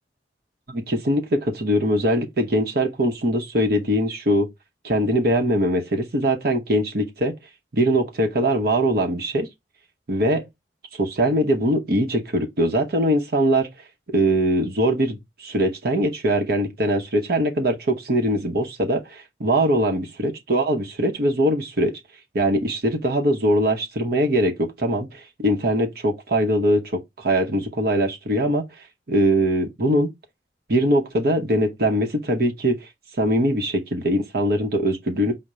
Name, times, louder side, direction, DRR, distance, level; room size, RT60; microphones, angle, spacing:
voice 1, 0.7-4.5 4.8-7.3 7.7-9.5 10.1-10.4 11.0-13.7 14.1-21.9 22.3-28.6 29.1-30.1 30.7-32.9 33.2-35.3, right 1 dB, 60° right, 0.9 m, -22 dB
4.9 x 2.1 x 4.2 m
head